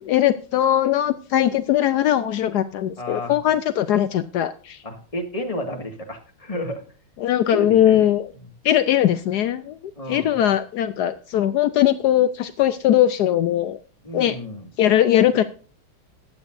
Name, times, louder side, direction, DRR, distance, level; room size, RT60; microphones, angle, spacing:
voice 1, 0.0-4.8 7.2-8.3 8.6-9.8 10.1-13.8 14.1-14.4 14.8-15.4, left 11 dB, 80° left, 11 dB, 0.9 m, -20 dB
voice 2, 3.0-3.4 4.8-6.8 7.5-8.1 10.0-10.4 14.0-14.7, left 1 dB, 15° left, 3 dB, 1.8 m, -31 dB
21.5 x 8.5 x 2.6 m, 0.41 s
omnidirectional pair, 2.4 m